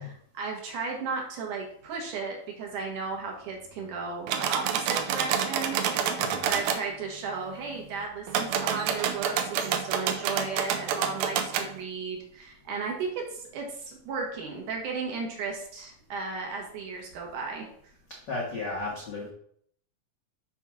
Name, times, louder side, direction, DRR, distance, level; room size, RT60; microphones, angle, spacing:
voice 1, 0.0-17.7, right 4 dB, 65° right, 0 dB, 2.7 m, -35 dB
sound 1, 4.3-6.8 8.3-11.7, right 8 dB, 85° right, 2.5 m, -28 dB
voice 2, 6.2-6.5 18.3-19.3, left 3 dB, 70° left, -3 dB, 1.0 m, -34 dB
7.0 x 3.7 x 6.0 m, 0.64 s
omnidirectional pair, 4.1 m